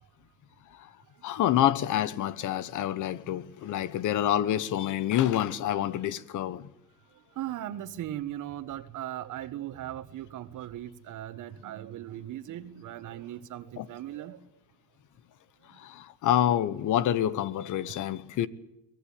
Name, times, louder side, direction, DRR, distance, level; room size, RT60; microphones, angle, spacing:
voice 1, 1.2-6.7 13.8-13.9 15.8-18.5, left 11 dB, 80° left, 1.2 m, -27 dB
voice 2, 7.4-14.4 17.8-17.9, right 12 dB, 80° right, 1.5 m, -38 dB
23.5 x 18.5 x 8.6 m
cardioid pair, 90°, 30 cm